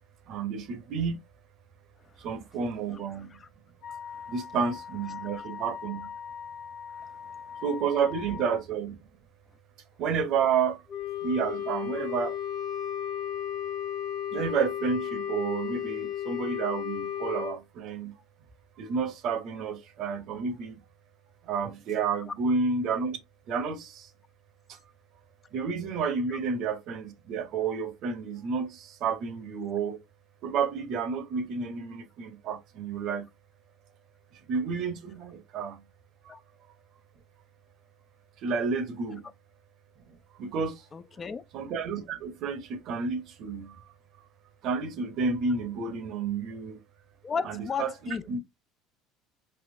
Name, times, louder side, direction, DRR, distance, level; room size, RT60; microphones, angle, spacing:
voice 1, 0.3-1.2 2.2-3.3 4.3-6.1 7.6-9.0 10.0-10.8 11.2-12.3 14.3-18.1 18.8-20.8 21.5-23.2 23.5-23.9 25.5-30.0 30.4-33.2 34.5-35.8 38.4-39.2 40.4-40.7 41.5-43.7 44.6-46.8 47.5-48.4, right 5 dB, 60° right, 0.7 m, -30 dB
Wind instrument woodwind instrument, 3.8-8.6, left 7 dB, 70° left, 0.8 m, -41 dB
Wind instrument woodwind instrument 2, 10.9-17.6, left 10 dB, 50° left, 1.1 m, -33 dB
voice 2, 40.9-41.4 47.2-48.4, left 6 dB, 30° left, 0.4 m, -35 dB
3.4 x 2.8 x 2.6 m
hypercardioid pair, 75°, 0 cm